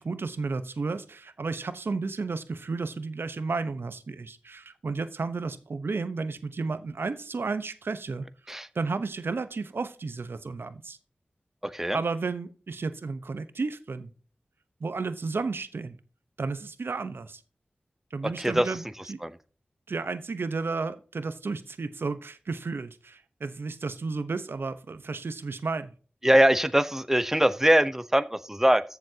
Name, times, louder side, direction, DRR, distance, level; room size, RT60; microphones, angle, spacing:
voice 1, 0.0-8.3 8.7-11.0 11.9-14.1 14.8-16.0 16.4-17.4 18.1-19.2 19.9-25.9, right 4 dB, 75° right, 11 dB, 1.0 m, -32 dB
voice 2, 11.6-12.0 18.4-18.7 19.2-19.3 26.2-28.8, right 1 dB, 10° right, 12 dB, 0.8 m, -22 dB
14.5 x 7.2 x 2.9 m, 0.38 s
cardioid pair, 45°, 4 cm